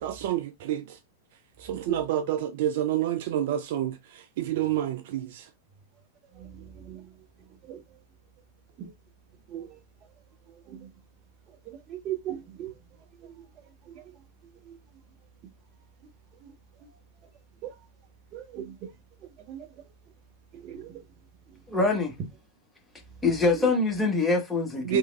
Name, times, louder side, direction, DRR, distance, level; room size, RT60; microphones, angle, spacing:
voice 1, 0.0-1.0 1.6-5.5 24.8-25.0, right 11 dB, 50° right, 0.3 m, -29 dB
voice 2, 6.4-7.1 7.6-7.8 8.8-8.9 9.5-9.8 10.7-10.9 11.6-12.7 13.2-13.4 13.9-14.0 14.6-14.8 16.4-16.5 16.8-16.9 17.6-17.7 18.3-18.9 19.5-19.7 20.5-21.0 23.5-23.7, right 10 dB, 35° right, 0.8 m, -38 dB
voice 3, 21.7-22.1 23.2-25.0, left 3 dB, 10° left, 1.0 m, -24 dB
3.3 x 3.0 x 2.3 m
figure-of-eight pair, 95°, 0 cm